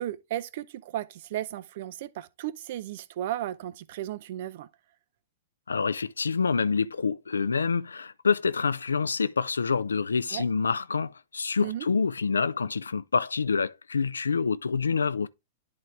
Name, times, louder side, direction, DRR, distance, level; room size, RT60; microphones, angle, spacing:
voice 1, 0.0-4.7 10.3-10.4 11.6-11.9, right 13 dB, 60° right, 0.6 m, -34 dB
voice 2, 5.7-15.3, left 5 dB, 85° left, 0.4 m, -27 dB
11.0 x 3.8 x 3.2 m
hypercardioid pair, 105°, 0 cm